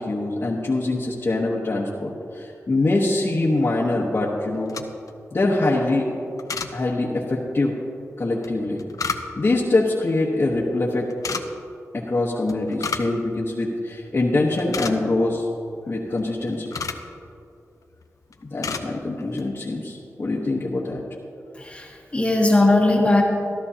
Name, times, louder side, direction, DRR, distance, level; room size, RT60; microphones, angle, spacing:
voice 1, 0.0-4.7 5.3-6.1 6.7-7.7 8.2-8.8 9.4-11.1 12.1-15.4 15.9-16.7 18.4-21.0, left 2 dB, 45° left, -5 dB, 1.1 m, -23 dB
sound 1, 4.5-5.2 6.4-6.7 8.4-9.6 11.1-11.4 12.5-13.2 13.5-13.6 14.1-14.2 14.5-15.3 16.2-17.1 17.8-18.1 18.3-18.9 19.2-19.5, left 5 dB, 80° left, 0.6 m, -31 dB
voice 2, 21.5-23.2, left 2 dB, 20° left, -1 dB, 1.2 m, -19 dB
13.5 x 12.5 x 2.8 m, 2.6 s
wide cardioid pair, 110°, 6 cm